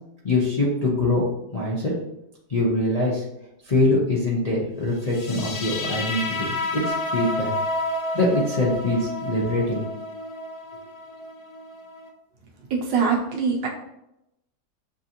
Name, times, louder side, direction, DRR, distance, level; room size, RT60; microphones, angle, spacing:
voice 1, 0.2-1.9 2.5-3.2 3.7-7.5 8.1-9.8, left 2 dB, 90° left, -5 dB, 0.3 m, -23 dB
sound 1, 5.1-12.1, left 2 dB, 65° left, 1.1 m, -30 dB
voice 2, 12.7-13.7, right 5 dB, 85° right, -1 dB, 1.5 m, -23 dB
6.8 x 2.6 x 2.8 m, 0.85 s
omnidirectional pair, 2.0 m